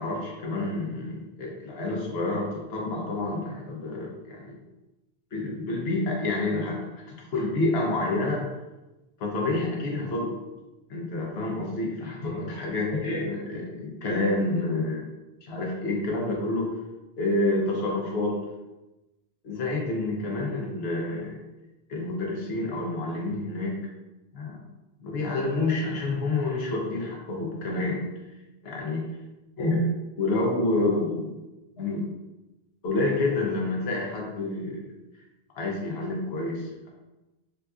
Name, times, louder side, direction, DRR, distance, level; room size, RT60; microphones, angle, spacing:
voice 1, 0.0-4.6 5.3-8.4 9.2-10.3 10.9-15.1 15.4-16.7 17.2-18.4 19.4-21.4 21.9-23.8 24.3-24.6 25.0-28.0 28.6-29.0 29.6-29.9 30.2-31.3 31.8-32.0 32.8-34.9 35.6-36.9, left 2 dB, 70° left, -1 dB, 1.0 m, -28 dB
3.8 x 2.4 x 2.3 m, 1.0 s
omnidirectional pair, 1.1 m